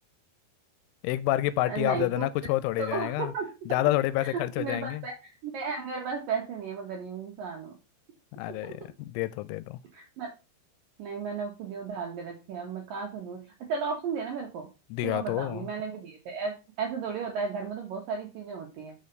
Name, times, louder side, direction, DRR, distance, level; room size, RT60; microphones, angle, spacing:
voice 1, 1.0-3.3 3.7-5.0 8.3-9.8 14.9-15.7, left 15 dB, 85° left, 3.0 m, -28 dB
voice 2, 1.7-2.3 2.8-3.5 4.2-5.1 5.4-7.7 8.6-8.7 9.9-10.3 11.0-13.4 13.7-14.7 15.0-18.9, right 5 dB, 75° right, 2.1 m, -34 dB
6.3 x 5.6 x 5.2 m
omnidirectional pair, 5.5 m